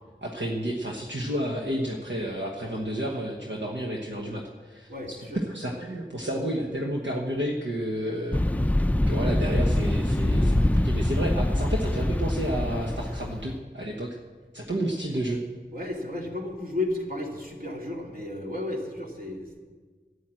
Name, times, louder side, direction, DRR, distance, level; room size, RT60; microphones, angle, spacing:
voice 1, 0.2-4.9 5.2-8.4 9.1-14.2 14.5-15.4, right 1 dB, 75° right, 0 dB, 1.3 m, -31 dB
voice 2, 4.9-5.4 15.7-19.6, left 2 dB, 50° right, -1 dB, 2.7 m, -33 dB
sound 1, 8.3-13.6, left 1 dB, 10° left, 0.4 m, -24 dB
12.0 x 10.5 x 7.6 m, 1.4 s
wide cardioid pair, 40°, 19 cm